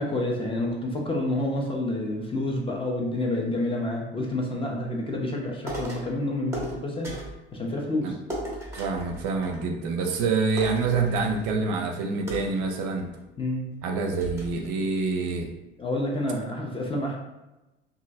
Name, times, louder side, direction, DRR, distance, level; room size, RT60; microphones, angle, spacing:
voice 1, 0.0-7.2 7.5-8.2 13.4-13.7 15.8-17.2, left 1 dB, 15° left, -1 dB, 0.5 m, -28 dB
sound 1, 5.7-6.1 6.5-7.4 8.3-9.9 10.2-10.3 10.6-11.6 12.3-13.2 13.7-13.8 14.2-14.7, right 1 dB, 10° right, 0.9 m, -37 dB
voice 2, 8.7-13.1 13.8-15.5, right 4 dB, 50° right, 2 dB, 0.5 m, -26 dB
2.9 x 2.5 x 2.6 m, 1.0 s
figure-of-eight pair, 65°, 33 cm